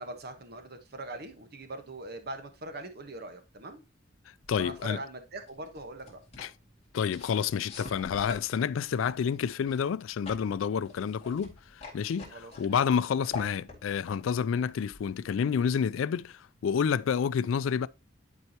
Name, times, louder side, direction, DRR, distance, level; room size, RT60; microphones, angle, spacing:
voice 1, 0.0-3.8 4.6-6.2 12.3-12.8, right 2 dB, 55° right, 1.2 m, -42 dB
sound 1, 4.4-15.6, left 4 dB, 35° left, 2.2 m, -48 dB
voice 2, 4.5-5.0 6.4-6.5 6.9-11.5 11.9-17.9, left 7 dB, 85° left, 0.3 m, -29 dB
11.0 x 4.6 x 2.9 m
head